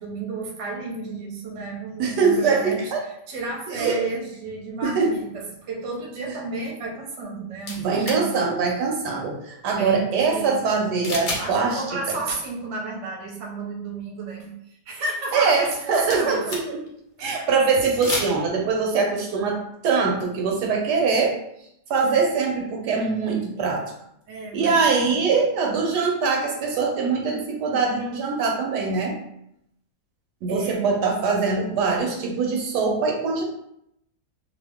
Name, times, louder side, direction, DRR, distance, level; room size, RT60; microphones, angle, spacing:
voice 1, 0.0-8.3 9.8-10.7 11.1-16.5 17.2-17.3 24.3-25.2 30.5-30.9, right 3 dB, 55° right, -1 dB, 0.9 m, -32 dB
voice 2, 2.0-3.0 3.8-4.0 4.8-5.1 7.8-11.8 12.1-12.2 15.3-16.8 17.2-19.6 19.8-21.3 21.9-23.9 24.5-29.1 30.4-33.4, right 4 dB, 80° right, 0 dB, 1.2 m, -23 dB
sound 1, 7.6-8.2 11.0-11.5 11.8-11.9 15.7-16.9 17.9-18.3, left 2 dB, 55° left, 0.5 m, -30 dB
2.8 x 2.3 x 3.4 m, 0.75 s
omnidirectional pair, 1.8 m